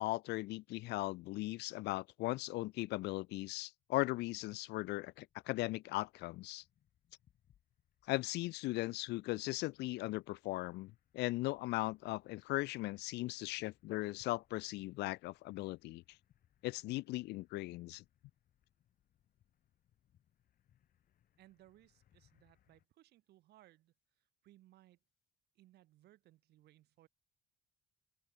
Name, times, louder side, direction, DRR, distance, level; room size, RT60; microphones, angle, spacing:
voice 1, 0.0-6.6 8.1-16.0 16.6-18.0, left 20 dB, 85° left, 0.8 m, -38 dB
sound 1, 3.8-22.9, left 11 dB, 60° left, 8.0 m, -75 dB
voice 2, 21.4-25.0 25.5-27.1, right 15 dB, 75° right, 4.4 m, -65 dB
open air
cardioid pair, 110°, 17 cm